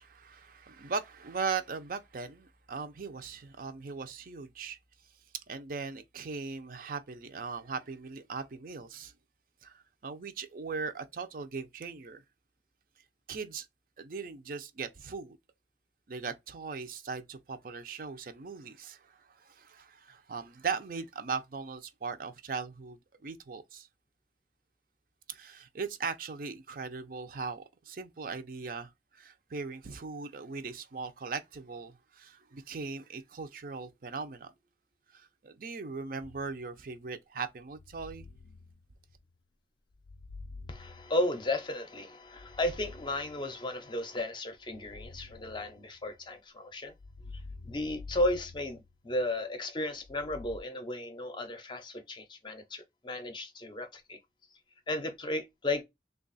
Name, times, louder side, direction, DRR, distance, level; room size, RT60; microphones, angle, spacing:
voice 1, 0.0-4.8 5.5-9.1 9.6-12.2 13.3-13.7 14.0-15.4 16.1-23.9 25.3-34.5 35.1-38.3, right 5 dB, 50° right, 0.5 m, -39 dB
sound 1, 36.2-36.9 37.7-39.3 39.9-41.7 42.2-43.8 44.6-46.3 46.9-49.4 50.0-50.6, left 3 dB, 75° left, 0.5 m, -49 dB
voice 2, 40.7-46.9 47.3-54.2 54.9-55.8, left 1 dB, 25° left, 0.6 m, -34 dB
3.3 x 2.3 x 3.9 m
head